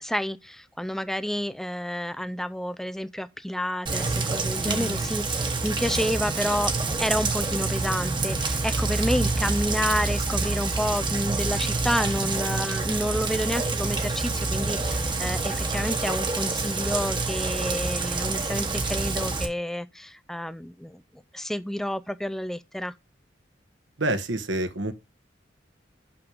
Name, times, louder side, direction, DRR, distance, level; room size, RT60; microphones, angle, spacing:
voice 1, 0.0-6.7 7.0-21.0 21.3-22.9, equal, ahead, 0.4 m, -29 dB
Rain, 3.9-19.5, right 3 dB, 25° right, 1.2 m, -27 dB
voice 2, 4.6-5.0 24.0-24.9, right 1 dB, 70° right, 1.2 m, -28 dB
6.5 x 6.0 x 5.1 m
head